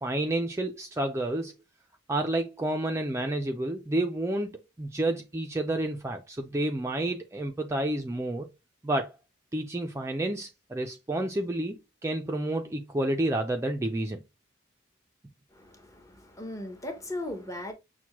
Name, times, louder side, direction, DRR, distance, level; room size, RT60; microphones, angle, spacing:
voice 1, 0.0-1.5 2.1-8.5 8.8-9.1 9.5-14.2, right 1 dB, 15° right, 0.3 m, -30 dB
voice 2, 15.5-17.7, left 1 dB, 15° left, 0.7 m, -38 dB
5.9 x 2.1 x 2.9 m
head